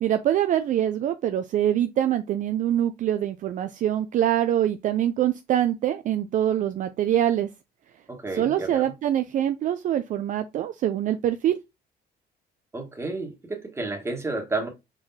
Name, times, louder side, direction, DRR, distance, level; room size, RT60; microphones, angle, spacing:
voice 1, 0.0-7.5 8.3-11.6, right 11 dB, 50° right, 0.4 m, -24 dB
voice 2, 8.1-8.9 12.7-14.7, right 3 dB, 15° right, 1.4 m, -31 dB
4.5 x 3.9 x 2.7 m
cardioid pair, 110°, 17 cm